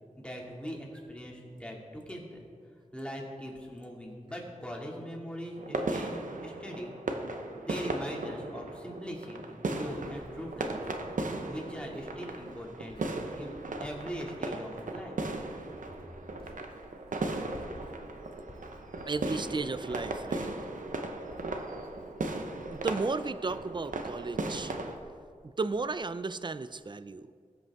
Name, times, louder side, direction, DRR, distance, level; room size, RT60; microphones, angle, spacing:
voice 1, 0.2-2.5 2.9-6.1 6.4-6.9 7.5-11.1 11.5-15.2, equal, 10° left, -2 dB, 2.4 m, -41 dB
sound 1, 5.6-25.0, right 2 dB, 90° right, 0.9 m, -37 dB
Writing, 9.6-26.1 26.4-26.8, left 1 dB, 40° left, 2.2 m, -55 dB
voice 2, 19.0-20.5 22.7-24.7 25.6-27.3, right 3 dB, 35° right, 13 dB, 0.5 m, -34 dB
19.5 x 8.1 x 3.6 m, 2.1 s
wide cardioid pair, 65°, 13 cm